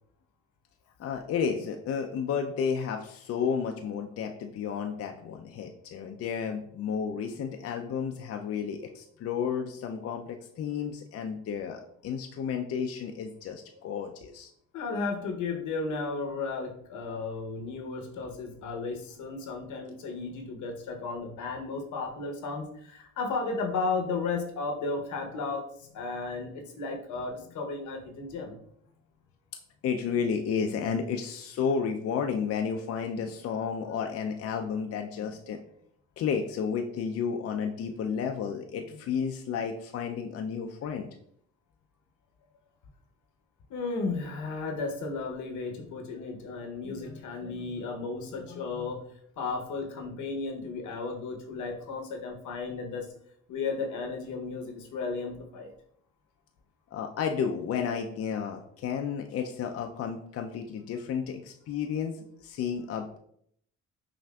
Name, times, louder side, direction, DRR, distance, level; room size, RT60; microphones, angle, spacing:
voice 1, 1.0-14.5 29.8-35.6 36.2-41.1 56.9-63.2, left 6 dB, 55° left, 4 dB, 0.4 m, -32 dB
voice 2, 14.7-28.5 33.2-33.3 38.8-39.0 43.7-49.0 49.4-53.1 53.5-55.7, left 4 dB, 75° left, 3 dB, 0.9 m, -34 dB
5.7 x 2.6 x 2.2 m, 0.67 s
cardioid pair, 90°, 30 cm